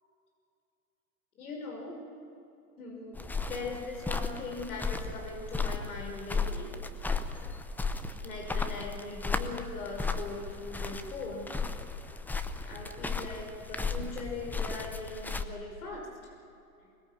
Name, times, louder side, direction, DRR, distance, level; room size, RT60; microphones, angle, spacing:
voice 1, 1.4-2.0 2.8-3.2 3.5-6.7 8.2-11.6 12.6-16.0, left 3 dB, 65° left, 0 dB, 5.6 m, -40 dB
sound 1, 3.1-15.4, left 4 dB, 5° left, 0.7 m, -35 dB
24.0 x 20.5 x 8.7 m, 2.7 s
hypercardioid pair, 110°, 47 cm